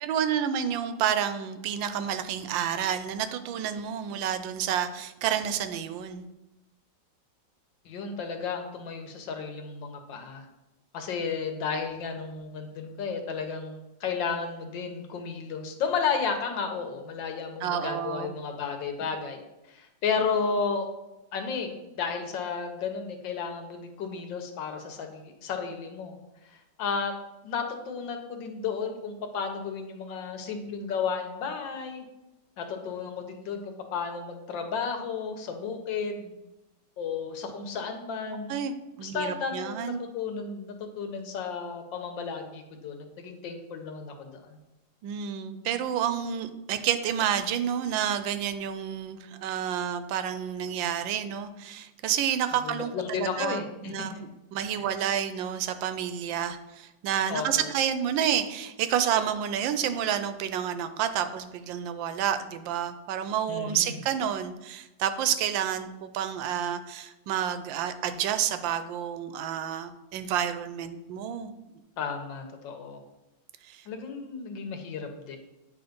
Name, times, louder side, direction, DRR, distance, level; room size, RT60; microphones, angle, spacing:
voice 1, 0.0-6.2 17.6-18.3 38.5-40.0 45.0-71.5 73.7-73.8, right 9 dB, 85° right, 10 dB, 1.3 m, -29 dB
voice 2, 7.9-10.5 10.9-19.4 19.7-20.9 21.3-21.7 22.0-26.2 26.8-27.2 27.4-32.0 32.6-36.3 37.0-38.6 39.0-44.6 52.5-54.2 54.8-54.9 57.3-57.7 63.5-64.0 72.0-73.0 73.9-75.4, left 5 dB, 80° left, 5 dB, 1.6 m, -33 dB
8.7 x 3.2 x 5.1 m, 0.97 s
omnidirectional pair, 2.0 m